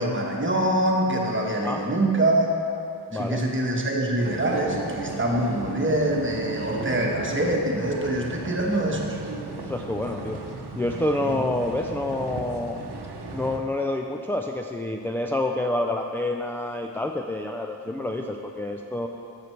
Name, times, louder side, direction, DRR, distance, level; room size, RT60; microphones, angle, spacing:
voice 1, 0.0-2.5 3.1-9.2 11.2-11.4, right 1 dB, 30° right, -1 dB, 1.3 m, -24 dB
voice 2, 3.1-3.4 9.6-10.4 10.8-12.8 13.3-19.1, left 1 dB, 5° left, 3 dB, 0.4 m, -28 dB
sound 1, 4.2-13.6, right 3 dB, 85° right, 0.9 m, -36 dB
7.5 x 6.7 x 4.5 m, 2.6 s
wide cardioid pair, 60°, 39 cm